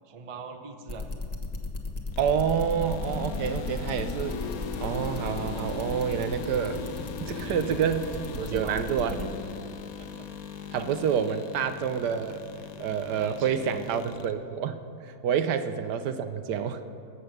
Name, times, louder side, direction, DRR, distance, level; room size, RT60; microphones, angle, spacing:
voice 1, 0.0-1.1 7.4-8.8 9.1-10.3 11.3-11.4 13.2-13.8 15.4-15.5, right 4 dB, 30° right, 6 dB, 0.6 m, -43 dB
sound 1, 0.9-9.2, left 2 dB, 25° left, 1.2 m, -34 dB
sound 2, 2.1-14.3, left 6 dB, 60° left, 1.2 m, -39 dB
voice 2, 2.2-4.4 4.8-6.8 7.2-9.1 10.7-12.4 12.8-16.8, right 7 dB, 75° right, 9 dB, 1.3 m, -28 dB
20.0 x 7.8 x 6.5 m, 2.6 s
omnidirectional pair, 1.8 m